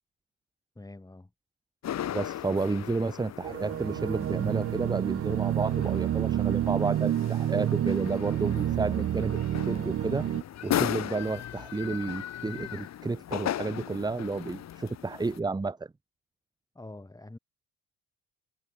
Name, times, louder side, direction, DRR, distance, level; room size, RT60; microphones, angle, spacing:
voice 1, 0.8-1.3 16.7-17.4, left 2 dB, 10° left, 5.4 m, -45 dB
sound 1, 1.8-15.4, left 11 dB, 55° left, 1.8 m, -37 dB
voice 2, 2.1-9.4 9.7-10.3 10.6-15.9, right 3 dB, 15° right, 0.9 m, -31 dB
sound 2, 3.4-10.4, right 11 dB, 45° right, 0.7 m, -29 dB
cardioid pair, 100°, 31 cm